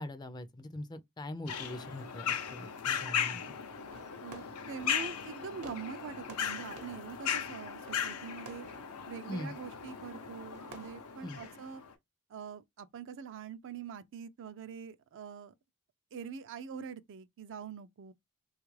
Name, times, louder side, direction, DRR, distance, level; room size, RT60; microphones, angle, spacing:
voice 1, 0.0-3.6 9.3-9.5 11.2-11.4, left 1 dB, 20° left, 0.4 m, -42 dB
sound 1, 1.5-11.9, left 8 dB, 85° left, 0.6 m, -37 dB
Fireworks, 3.9-12.0, right 2 dB, 90° right, 0.9 m, -55 dB
voice 2, 4.2-8.7 9.1-11.8 12.3-15.5 16.1-18.1, right 7 dB, 60° right, 0.4 m, -44 dB
3.5 x 2.4 x 3.1 m
head